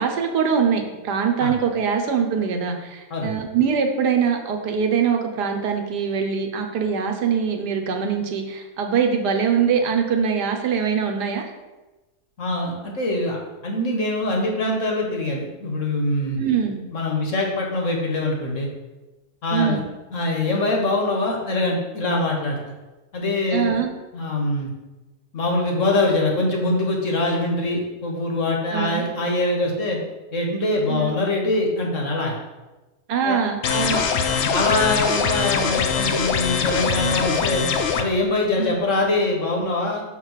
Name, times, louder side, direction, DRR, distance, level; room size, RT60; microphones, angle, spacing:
voice 1, 0.0-11.5 16.4-16.8 19.5-19.8 23.5-23.9 28.7-29.0 30.9-31.1 33.1-34.0 38.6-38.7, right 6 dB, 75° right, 3 dB, 1.4 m, -23 dB
voice 2, 12.4-16.4 16.9-18.7 19.4-19.8 20.1-22.6 23.1-23.8 24.1-24.7 25.3-30.0 30.3-32.4 33.2-33.4 33.9-34.0 34.5-37.6 38.0-40.0, left 2 dB, 50° left, 0 dB, 1.5 m, -23 dB
sound 1, 33.6-38.0, left 6 dB, 70° left, 0.6 m, -22 dB
6.0 x 4.1 x 6.3 m, 1.1 s
omnidirectional pair, 1.8 m